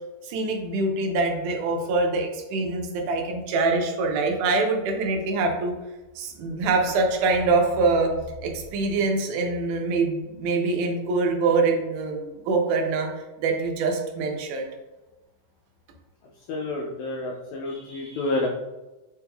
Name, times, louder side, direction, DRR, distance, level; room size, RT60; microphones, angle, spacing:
voice 1, 0.2-5.7 6.2-8.1 8.4-13.1 13.4-14.7, right 3 dB, 80° right, 2 dB, 2.1 m, -24 dB
voice 2, 16.5-18.5, left 2 dB, 90° left, -1 dB, 1.6 m, -29 dB
5.1 x 3.3 x 2.2 m, 1.1 s
omnidirectional pair, 3.8 m